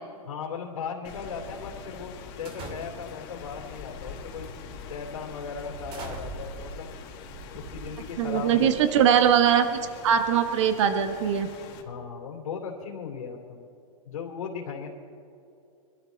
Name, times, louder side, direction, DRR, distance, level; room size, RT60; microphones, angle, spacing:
voice 1, 0.3-4.5 4.9-7.0 7.5-9.0 11.8-13.6 14.0-14.9, left 6 dB, 85° left, -1 dB, 3.1 m, -37 dB
Rain, 1.0-11.8, left 6 dB, 40° left, 2.1 m, -44 dB
sound 1, 2.5-3.3 4.1-4.3 4.8-4.9 5.6-8.5, right 3 dB, 30° right, 2.3 m, -42 dB
voice 2, 8.2-11.5, right 8 dB, 55° right, 8 dB, 1.2 m, -22 dB
25.0 x 12.5 x 4.0 m, 2.7 s
hypercardioid pair, 155°, 18 cm